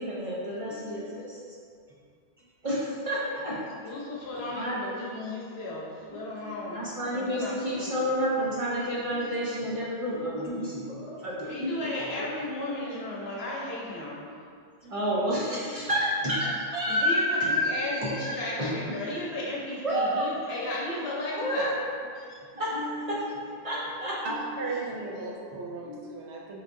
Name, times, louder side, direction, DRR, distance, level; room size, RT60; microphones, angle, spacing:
voice 1, 0.0-1.3 2.6-4.1 4.4-4.8 6.1-12.3 12.6-12.7 14.8-17.7 18.0-18.3 18.6-19.0 19.8-20.3 21.0-21.7 22.0-22.1 22.6-24.7 25.8-26.1, equal, 45° right, -7 dB, 0.5 m, -30 dB
voice 2, 3.8-7.9 11.5-14.3 16.9-21.8 22.2-22.4, left 1 dB, 75° left, -4 dB, 0.9 m, -35 dB
voice 3, 24.2-26.6, right 3 dB, 85° right, -2 dB, 0.9 m, -36 dB
3.5 x 3.0 x 2.5 m, 2.3 s
omnidirectional pair, 1.1 m